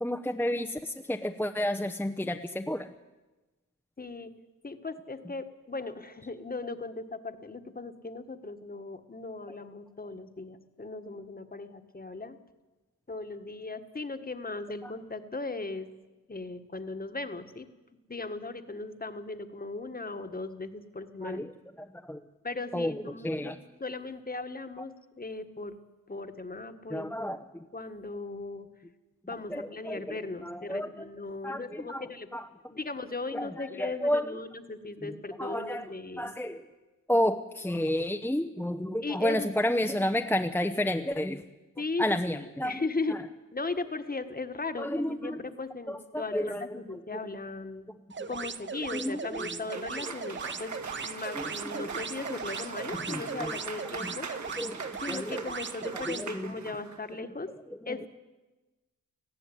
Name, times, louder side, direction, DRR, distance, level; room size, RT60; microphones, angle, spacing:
voice 1, 0.0-2.9 14.8-14.9 21.2-21.5 21.8-22.2 22.7-23.6 26.9-27.6 29.5-31.1 31.4-32.5 33.3-34.4 35.0-36.7 37.1-41.4 42.0-42.8 43.1-43.2 44.8-45.4 45.9-47.0 48.2-48.3 48.9-50.1 50.4-50.5 51.3-51.9 52.9-53.6 54.0-54.1 54.5-55.5 55.9-56.5, left 1 dB, 5° left, 6 dB, 0.9 m, -32 dB
voice 2, 4.0-4.3 4.6-12.4 13.1-15.9 16.3-17.7 18.1-21.5 22.4-25.8 26.1-27.1 27.7-28.7 29.3-32.3 32.7-36.3 39.0-39.5 41.8-42.0 42.3-43.2 43.5-47.9 48.3-54.3 55.0-57.5 57.9-58.1, left 3 dB, 25° left, 9 dB, 1.6 m, -37 dB
sound 1, 48.1-56.3, right 5 dB, 35° right, 0.8 m, -38 dB
Cheering / Applause, 49.4-57.0, right 4 dB, 55° right, 2.2 m, -42 dB
18.5 x 14.5 x 10.0 m, 1.2 s
cardioid pair, 80°, 34 cm